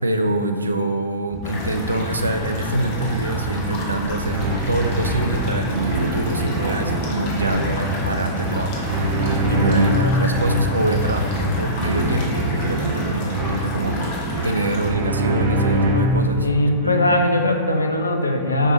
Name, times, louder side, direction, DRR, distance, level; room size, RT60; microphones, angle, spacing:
voice 1, 0.0-8.9 9.5-16.5 16.8-17.2, right 2 dB, 80° right, 7 dB, 0.3 m, -25 dB
sound 1, 1.3-12.8, equal, 5° left, 0.6 m, -32 dB
sound 2, 1.4-14.9, left 1 dB, 50° left, 1.5 m, -29 dB
sound 3, 4.3-16.3, right 1 dB, 50° right, 0.9 m, -24 dB
voice 2, 16.4-18.7, left 1 dB, 80° left, 4 dB, 0.6 m, -20 dB
8.9 x 6.0 x 2.8 m, 2.4 s
figure-of-eight pair, 90°, 0 cm